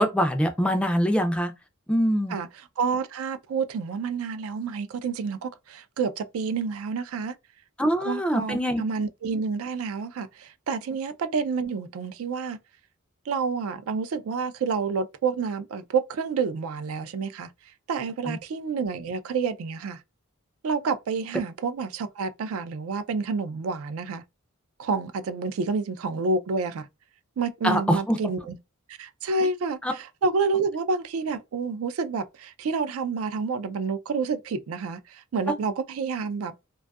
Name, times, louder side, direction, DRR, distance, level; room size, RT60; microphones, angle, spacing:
voice 1, 0.0-1.5 1.9-2.4 7.8-8.8 18.3-18.4 27.6-28.2 29.8-29.9, equal, 5° left, 0.3 m, -23 dB
voice 2, 2.8-7.4 8.0-12.6 13.3-17.5 17.9-20.0 20.6-24.2 24.8-26.9 27.4-28.6 29.0-36.5, right 4 dB, 75° right, 0.4 m, -29 dB
2.5 x 2.3 x 2.2 m
head